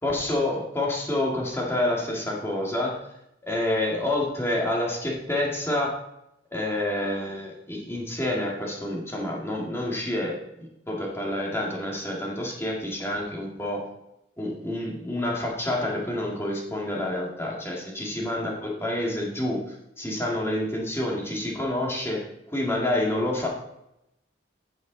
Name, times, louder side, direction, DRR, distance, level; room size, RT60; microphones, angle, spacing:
voice 1, 0.0-3.0 3.4-6.0 6.5-13.9 14.4-23.5, left 1 dB, 15° left, -2 dB, 1.9 m, -28 dB
15.0 x 5.4 x 3.9 m, 0.84 s
head